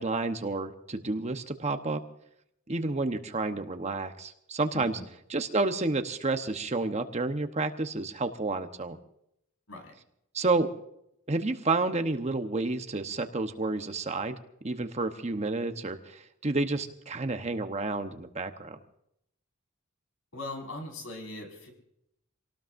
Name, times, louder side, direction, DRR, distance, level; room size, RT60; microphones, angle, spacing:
voice 1, 0.0-2.0 2.7-5.0 5.3-9.0 10.3-10.7 11.3-14.4 14.6-18.8, right 3 dB, 30° right, 7 dB, 1.0 m, -30 dB
voice 2, 4.7-5.1 9.7-10.0 20.3-21.7, left 2 dB, 75° left, 2 dB, 5.5 m, -40 dB
27.0 x 18.5 x 2.6 m, 0.78 s
head